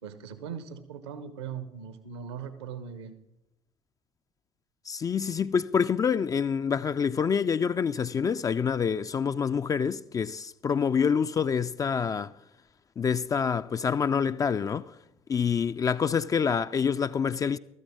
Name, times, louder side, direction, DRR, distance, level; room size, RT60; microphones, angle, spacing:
voice 1, 0.0-3.2, right 7 dB, 70° right, 0.9 m, -40 dB
voice 2, 4.9-12.3 13.0-15.0 15.3-17.6, left 6 dB, 25° left, 0.3 m, -27 dB
14.5 x 13.5 x 3.6 m
figure-of-eight pair, 55°, 14 cm